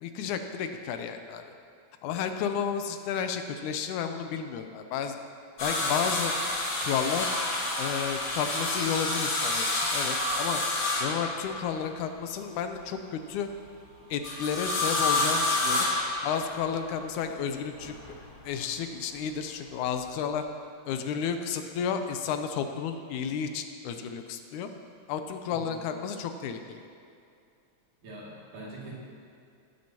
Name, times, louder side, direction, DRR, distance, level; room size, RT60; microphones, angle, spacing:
voice 1, 0.0-1.5 2.0-5.2 5.6-6.3 6.8-7.3 7.8-10.6 11.0-13.5 14.1-15.9 16.2-17.9 18.4-20.5 20.9-24.7 25.1-26.8, left 7 dB, 90° left, 7 dB, 2.1 m, -32 dB
sound 1, 5.6-11.8 14.2-16.7 17.8-18.5 20.0-20.1, left 2 dB, 45° left, 1.2 m, -29 dB
voice 2, 28.0-28.9, right 1 dB, 80° right, -6 dB, 4.0 m, -43 dB
18.0 x 9.3 x 2.9 m, 2.5 s
omnidirectional pair, 3.5 m